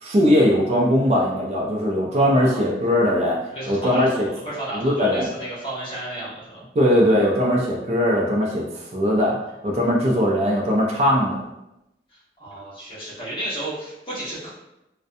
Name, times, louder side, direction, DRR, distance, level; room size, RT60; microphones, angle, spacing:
voice 1, 0.0-3.4 3.7-4.3 4.7-5.3 6.8-9.4 9.6-11.4, equal, 35° right, -2 dB, 0.3 m, -20 dB
voice 2, 2.1-2.6 3.5-6.6 12.4-14.5, right 1 dB, 30° left, -9 dB, 1.0 m, -32 dB
2.5 x 2.1 x 2.5 m, 0.90 s
head